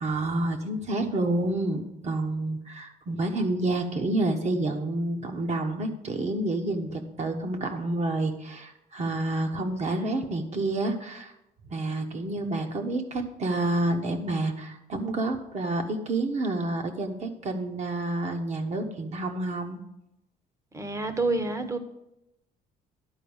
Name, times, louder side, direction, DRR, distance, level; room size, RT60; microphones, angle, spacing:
voice 1, 0.0-11.3 11.7-19.8, right 2 dB, 40° right, 5 dB, 1.3 m, -29 dB
voice 2, 20.7-21.8, right 3 dB, 20° right, 10 dB, 1.0 m, -28 dB
11.0 x 4.6 x 7.2 m, 0.87 s
cardioid pair, 110°, 17 cm